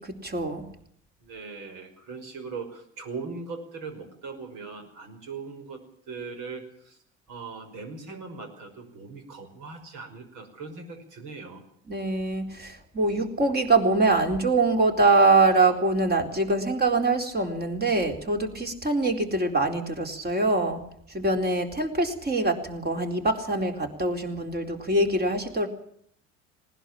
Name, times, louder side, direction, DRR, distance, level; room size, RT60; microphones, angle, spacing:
voice 1, 0.2-0.6 11.9-20.8 21.1-25.7, right 2 dB, 25° right, 4 dB, 4.1 m, -24 dB
voice 2, 1.2-7.0 7.3-11.6, right 4 dB, 55° right, 7 dB, 5.5 m, -40 dB
19.5 x 18.5 x 7.4 m, 0.66 s
hypercardioid pair, 65°, 37 cm